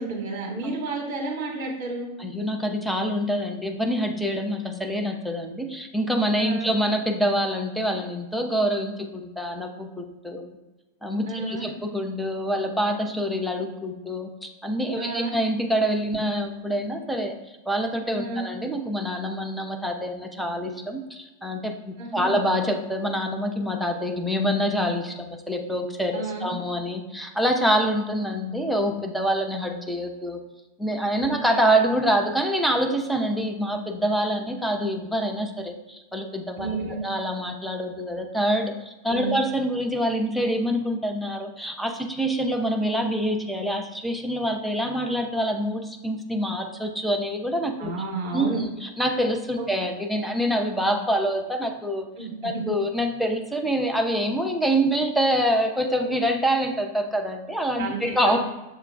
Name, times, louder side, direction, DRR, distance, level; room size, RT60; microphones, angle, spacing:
voice 1, 0.0-2.1 6.4-6.7 11.3-11.7 15.0-15.3 18.1-18.5 22.0-22.4 26.1-26.5 31.2-31.3 36.6-37.0 39.1-39.4 47.8-48.6 52.2-52.5 57.8-58.4, right 3 dB, 45° right, -1 dB, 1.0 m, -31 dB
voice 2, 2.2-10.5 11.0-17.4 17.7-30.4 30.8-47.9 48.3-58.4, equal, ahead, 3 dB, 0.5 m, -26 dB
6.6 x 2.2 x 3.3 m, 1.1 s
figure-of-eight pair, 90°, 0 cm